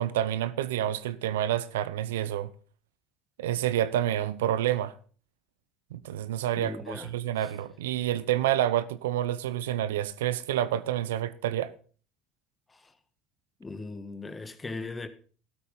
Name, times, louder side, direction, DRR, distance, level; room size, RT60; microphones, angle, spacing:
voice 1, 0.0-2.5 3.4-4.9 5.9-11.7, right 12 dB, 80° right, 0.7 m, -28 dB
voice 2, 6.5-7.1 7.4-7.5 12.7-12.9 13.6-15.1, left 3 dB, 20° left, 1.6 m, -39 dB
13.5 x 8.5 x 5.3 m
hypercardioid pair, 70°, 0 cm